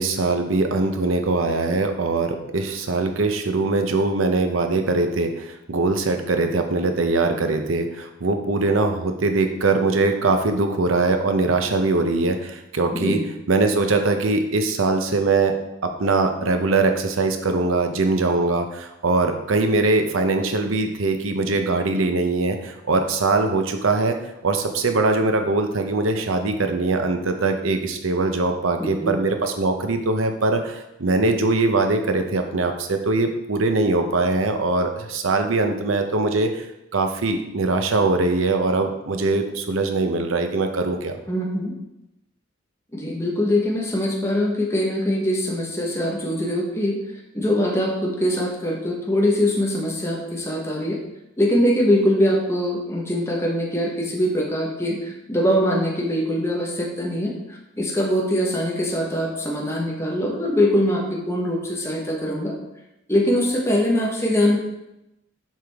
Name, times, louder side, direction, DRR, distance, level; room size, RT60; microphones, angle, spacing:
voice 1, 0.0-13.2 13.5-15.6 15.8-24.2 24.4-36.6 36.9-41.1, right 3 dB, 85° right, 6 dB, 0.8 m, -22 dB
voice 2, 12.9-13.2 28.8-29.1 41.3-41.7 42.9-47.0 47.3-51.0 51.4-57.3 57.8-62.5 63.1-64.6, left 1 dB, 15° left, -2 dB, 1.2 m, -22 dB
7.5 x 4.9 x 3.5 m, 0.90 s
head